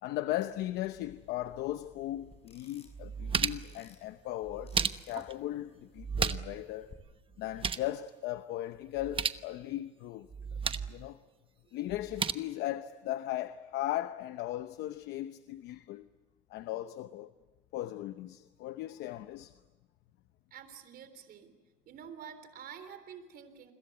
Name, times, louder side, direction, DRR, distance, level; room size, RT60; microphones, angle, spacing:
voice 1, 0.0-4.8 5.1-6.9 7.4-10.6 10.9-11.2 11.7-16.1 16.5-17.3 17.7-19.5, left 14 dB, 85° left, 0.9 m, -37 dB
sound 1, 1.1-6.9, left 4 dB, 35° left, 6.0 m, -62 dB
sound 2, 2.3-2.4 2.9-3.8 4.5-5.3 6.0-6.6 6.9-7.0 7.3-7.9 9.0-9.4 10.3-11.0 11.9-12.3, right 6 dB, 30° right, 1.0 m, -33 dB
voice 2, 20.5-21.5 21.9-23.7, right 8 dB, 65° right, 3.5 m, -48 dB
29.5 x 22.0 x 8.0 m
cardioid pair, 110°, 17 cm